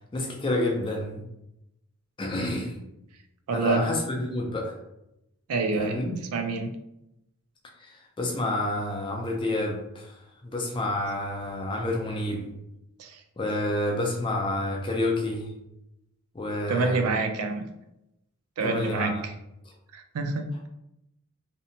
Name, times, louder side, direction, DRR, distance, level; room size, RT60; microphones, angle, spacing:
voice 1, 0.1-1.2 2.2-2.8 3.5-4.8 5.8-6.2 7.8-10.1 10.4-12.5 13.4-15.5 16.3-17.0 18.6-19.1, left 1 dB, 20° left, 0 dB, 0.3 m, -29 dB
voice 2, 3.5-3.9 5.5-6.0 6.3-6.7 13.0-13.2 16.7-17.7 18.6-19.3 19.9-20.5, right 4 dB, 90° right, 6 dB, 0.4 m, -27 dB
2.7 x 2.1 x 2.7 m, 0.86 s
head